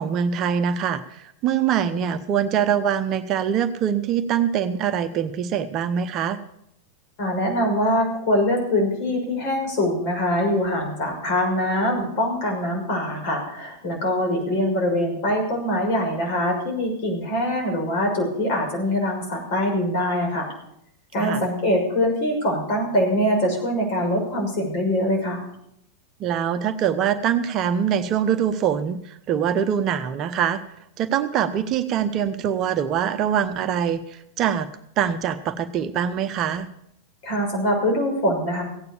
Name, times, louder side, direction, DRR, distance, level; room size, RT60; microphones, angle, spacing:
voice 1, 0.0-6.4 21.2-21.4 26.2-30.6 31.0-34.7 35.0-36.7, right 8 dB, 35° right, 9 dB, 0.9 m, -23 dB
voice 2, 7.2-20.5 21.1-25.4 37.2-38.6, left 1 dB, 50° left, 1 dB, 6.3 m, -23 dB
16.5 x 9.4 x 7.1 m, 0.77 s
figure-of-eight pair, 90°, 0 cm